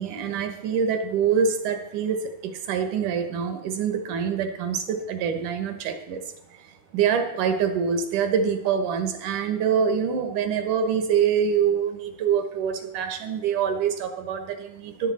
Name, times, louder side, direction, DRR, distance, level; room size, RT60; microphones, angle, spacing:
voice 1, 0.0-15.1, right 7 dB, 70° right, 7 dB, 2.5 m, -25 dB
13.5 x 11.0 x 4.2 m, 0.86 s
omnidirectional pair, 3.8 m